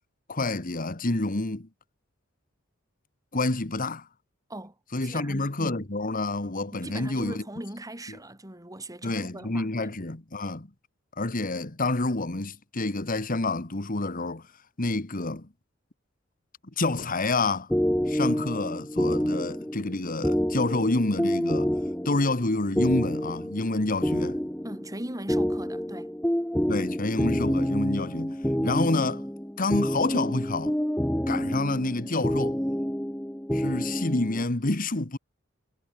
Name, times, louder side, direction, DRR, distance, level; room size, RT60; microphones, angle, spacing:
voice 1, 0.3-1.7 3.3-4.1 4.9-7.4 8.1-8.2 9.0-10.7 11.2-14.5 14.8-15.5 16.8-17.7 18.1-21.7 22.0-24.4 26.7-29.2 29.6-30.8 31.3-32.6 33.5-35.2, left 2 dB, 45° left, 1.6 m, -28 dB
voice 2, 5.0-5.9 6.8-9.9 24.6-26.1, right 1 dB, 15° right, 5.3 m, -39 dB
sound 1, 17.7-34.4, equal, 5° left, 1.4 m, -28 dB
head